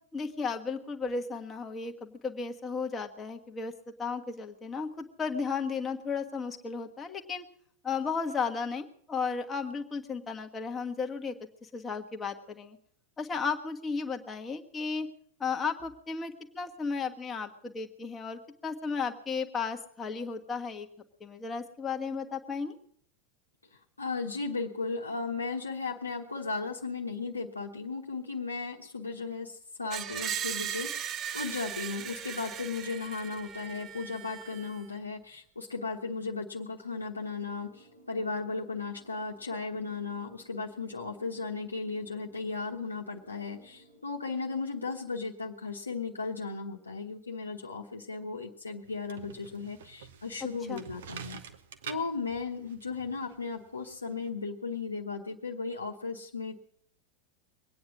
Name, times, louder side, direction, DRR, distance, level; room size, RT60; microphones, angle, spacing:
voice 1, 0.1-3.7 4.0-7.4 7.8-11.3 11.6-12.8 13.2-15.1 15.4-20.9 21.2-22.7 50.7-50.8, left 5 dB, 15° left, 3 dB, 1.4 m, -34 dB
voice 2, 24.0-51.4 51.9-56.6, left 4 dB, 80° left, -1 dB, 1.2 m, -36 dB
Screech, 29.9-34.9, right 9 dB, 30° right, 0.6 m, -38 dB
sound 1, 37.5-44.0, right 2 dB, 80° right, 5.1 m, -59 dB
sound 2, 48.8-54.3, right 8 dB, 60° right, 1.1 m, -48 dB
22.5 x 9.5 x 6.2 m, 0.63 s
figure-of-eight pair, 90°, 0 cm